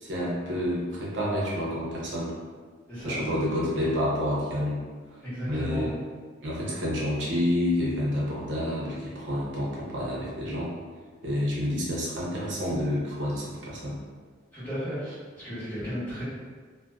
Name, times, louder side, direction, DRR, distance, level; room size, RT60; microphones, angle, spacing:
voice 1, 0.0-2.3 3.0-4.8 5.5-5.9 6.4-10.7 11.2-14.0, left 1 dB, 65° right, -5 dB, 0.7 m, -29 dB
voice 2, 5.2-5.9 14.5-16.2, equal, 10° left, -14 dB, 1.2 m, -34 dB
2.4 x 2.2 x 2.3 m, 1.5 s
head